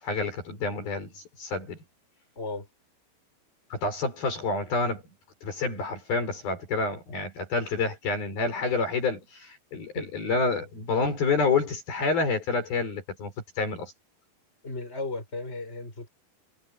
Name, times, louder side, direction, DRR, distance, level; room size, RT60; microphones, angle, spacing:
voice 1, 0.0-1.8 3.7-5.0 5.4-13.3 13.6-13.9, left 4 dB, 50° left, 7.5 m, -28 dB
voice 2, 2.4-2.7 9.9-10.1 14.6-16.1, left 2 dB, 15° left, 7.1 m, -35 dB
omnidirectional pair, 5.4 m